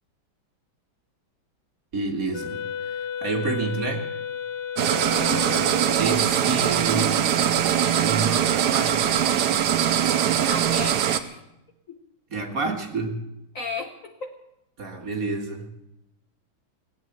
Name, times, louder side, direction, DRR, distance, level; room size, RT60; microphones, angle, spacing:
voice 1, 1.9-4.1 6.0-7.6 8.0-9.0 12.3-13.2 14.8-15.7, right 3 dB, 45° right, 3 dB, 2.0 m, -29 dB
Wind instrument woodwind instrument, 2.3-6.2, left 7 dB, 65° left, 1.3 m, -33 dB
sound 1, 4.8-11.2, right 9 dB, 60° right, 1.2 m, -22 dB
voice 2, 5.1-5.7 10.5-11.4 11.9-12.0 13.5-14.3, left 4 dB, 50° left, 5 dB, 1.2 m, -35 dB
18.5 x 8.8 x 7.9 m, 0.88 s
omnidirectional pair, 2.3 m